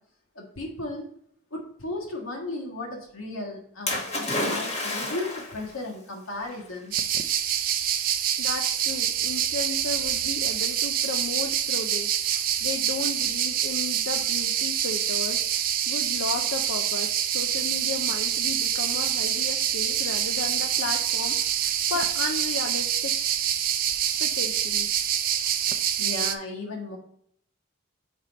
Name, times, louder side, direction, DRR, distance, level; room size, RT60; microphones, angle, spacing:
voice 1, 0.3-1.1 1.5-7.0 26.0-27.0, left 2 dB, 85° left, 0 dB, 1.5 m, -35 dB
Splash splatter, 3.9-5.7 6.6-6.7, left 2 dB, 30° left, 1.4 m, -29 dB
sound 1, 6.9-26.3, right 10 dB, 45° right, 0.4 m, -26 dB
voice 2, 8.4-23.1 24.2-25.0, left 4 dB, 70° left, 3 dB, 0.5 m, -34 dB
4.6 x 4.2 x 5.1 m, 0.67 s
head